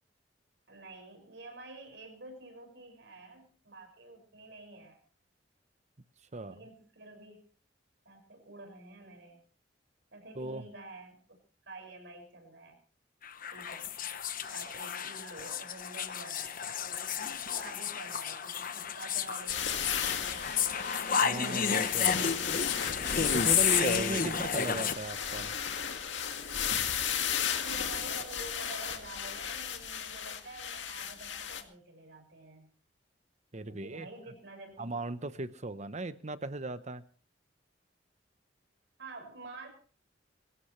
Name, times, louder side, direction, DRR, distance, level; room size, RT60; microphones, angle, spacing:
voice 1, 0.7-5.0 6.5-7.4 8.0-9.4 10.1-11.4 11.7-12.8 13.5-13.9 14.5-17.2 17.5-21.4 27.4-32.7 33.7-34.9 39.0-39.7, right 2 dB, 70° right, 4 dB, 6.3 m, -49 dB
sound 1, 13.2-24.9, left 7 dB, 50° left, 1.1 m, -31 dB
sound 2, 19.5-31.6, left 8 dB, 80° left, 2.1 m, -35 dB
voice 2, 21.2-22.6 23.3-25.5 33.5-34.1 34.8-37.0, right 2 dB, 40° right, 12 dB, 1.0 m, -37 dB
23.0 x 16.5 x 3.3 m, 0.39 s
head